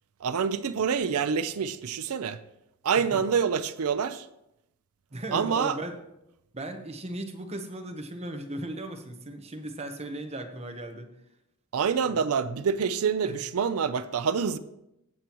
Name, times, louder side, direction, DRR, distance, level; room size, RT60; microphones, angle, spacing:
voice 1, 0.2-2.4 2.8-4.3 5.3-5.8 11.7-14.6, right 6 dB, 80° right, 0.5 m, -26 dB
voice 2, 5.1-6.0 6.5-11.1 12.1-12.2 13.3-13.4, right 1 dB, 30° right, 1.0 m, -37 dB
17.5 x 7.5 x 3.0 m
head